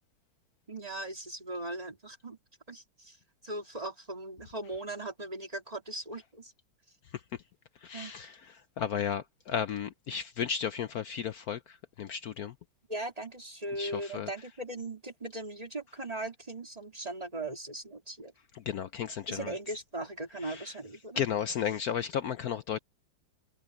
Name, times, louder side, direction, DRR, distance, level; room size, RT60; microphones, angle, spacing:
voice 1, 0.7-2.4 2.7-3.2 3.4-6.5 7.9-8.2 12.9-18.3 19.3-21.2, right 2 dB, 15° right, 2.9 m, -39 dB
voice 2, 7.8-8.4 8.8-12.5 13.8-14.3 18.5-19.5 20.4-20.7 21.2-22.8, left 8 dB, 70° left, 0.8 m, -34 dB
omnidirectional pair, 2.3 m